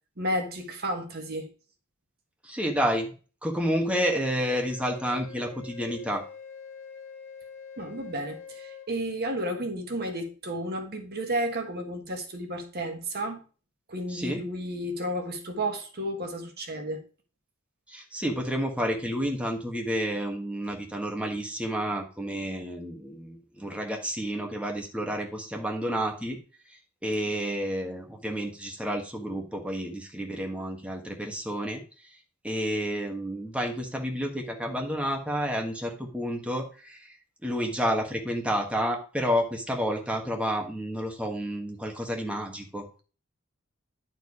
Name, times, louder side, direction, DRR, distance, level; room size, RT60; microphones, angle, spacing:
voice 1, 0.2-1.5 7.8-13.4 13.9-17.0, right 1 dB, 50° right, 1.5 m, -32 dB
voice 2, 2.4-3.1 3.4-6.2 14.1-14.4 17.9-26.4 27.0-31.8 32.4-37.2 37.4-42.9, equal, 5° right, 1.4 m, -30 dB
Wind instrument woodwind instrument, 4.4-8.9, left 6 dB, 30° left, 2.6 m, -45 dB
10.5 x 4.6 x 4.8 m
head